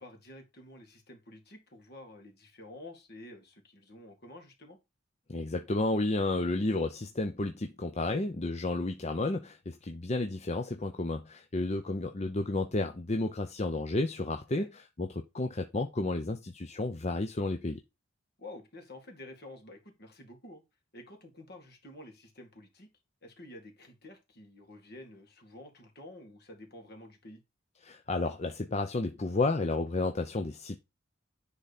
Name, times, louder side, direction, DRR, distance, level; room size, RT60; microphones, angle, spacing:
voice 1, 0.0-4.8 14.5-14.7 18.4-20.6 20.9-22.9 23.2-27.4, left 1 dB, 50° left, 2.3 m, -50 dB
voice 2, 5.3-17.8 27.8-30.8, left 2 dB, 35° left, 0.7 m, -32 dB
10.0 x 3.9 x 4.2 m
head